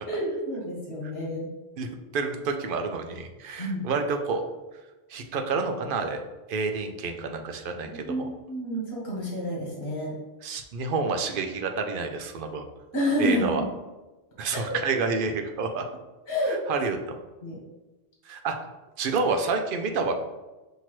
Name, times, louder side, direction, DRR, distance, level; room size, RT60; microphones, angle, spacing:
voice 1, 0.1-1.5 3.6-3.8 7.9-8.2 8.5-10.1 12.9-13.7 14.5-14.6 16.3-16.6 17.4-17.6, equal, 65° left, -4 dB, 1.3 m, -29 dB
voice 2, 1.8-4.4 5.1-6.2 6.5-8.3 10.4-12.6 13.2-13.6 14.4-15.8 16.5-17.2 18.3-18.6 19.0-20.1, right 4 dB, 65° right, 5 dB, 0.7 m, -29 dB
5.8 x 2.8 x 3.0 m, 1.1 s
omnidirectional pair, 1.1 m